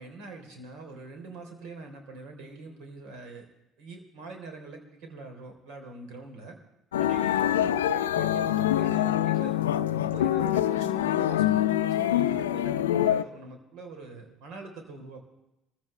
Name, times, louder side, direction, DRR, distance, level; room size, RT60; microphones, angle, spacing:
voice 1, 0.0-3.5 3.8-6.6 7.0-9.6 9.9-15.3, right 3 dB, 65° right, 4 dB, 3.4 m, -43 dB
sound 1, 6.9-13.2, left 12 dB, 80° left, 0.5 m, -25 dB
24.0 x 15.0 x 3.3 m, 0.89 s
hypercardioid pair, 55°, 0 cm